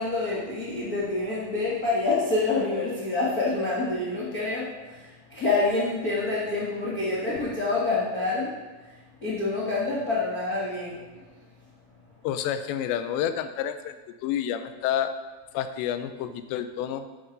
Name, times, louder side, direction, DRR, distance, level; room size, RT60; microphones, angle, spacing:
voice 1, 0.0-8.5 9.2-11.0, left 3 dB, 60° left, -7 dB, 0.9 m, -27 dB
voice 2, 12.2-15.1 15.5-17.0, left 10 dB, 85° left, 9 dB, 2.9 m, -29 dB
10.0 x 9.4 x 4.0 m, 1.2 s
omnidirectional pair, 4.9 m